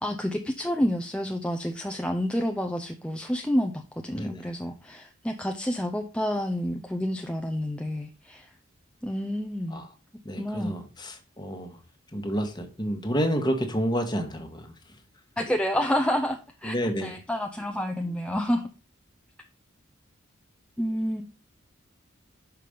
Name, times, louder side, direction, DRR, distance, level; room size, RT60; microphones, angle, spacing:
voice 1, 0.0-8.5 9.0-9.8 10.4-10.7 15.4-16.7 17.0-18.7 20.8-21.2, equal, 5° left, 0.5 m, -29 dB
voice 2, 4.1-4.5 9.7-9.8 10.2-11.7 12.1-14.7 16.6-17.1, equal, 20° left, 1.3 m, -29 dB
5.8 x 5.0 x 5.1 m
head